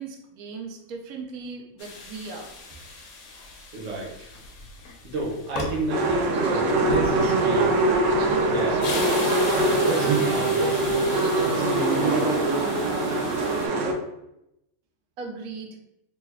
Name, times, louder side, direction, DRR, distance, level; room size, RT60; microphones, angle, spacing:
voice 1, 0.0-2.5 15.2-15.8, right 4 dB, 90° right, 3 dB, 1.1 m, -38 dB
sound 1, 1.8-13.7, left 3 dB, 85° left, 1.1 m, -38 dB
voice 2, 3.7-4.3 5.0-7.8 8.4-8.9 9.6-11.0 11.3-12.5, right 1 dB, 40° right, -3 dB, 0.6 m, -31 dB
sound 2, 5.9-13.9, right 2 dB, 70° right, 0.9 m, -23 dB
3.2 x 2.2 x 3.4 m, 0.85 s
omnidirectional pair, 1.5 m